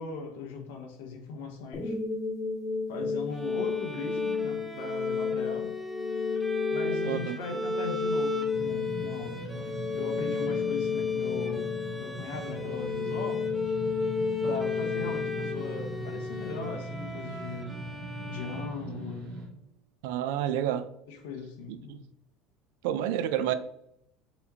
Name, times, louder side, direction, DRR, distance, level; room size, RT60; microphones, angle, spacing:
voice 1, 0.0-2.0 2.9-5.7 6.7-13.5 14.4-17.9 18.2-19.4 21.1-22.0, left 4 dB, 85° left, 0.8 m, -39 dB
sound 1, 1.7-16.7, left 6 dB, 25° left, 0.9 m, -32 dB
Bowed string instrument, 3.3-19.4, right 3 dB, ahead, 0.6 m, -39 dB
voice 2, 7.1-7.6 20.0-20.9 21.7-22.0 22.8-23.5, right 11 dB, 80° right, 0.3 m, -30 dB
sound 2, 8.5-19.5, right 1 dB, 55° right, 1.1 m, -40 dB
4.1 x 2.8 x 2.7 m
supercardioid pair, 115°, 0 cm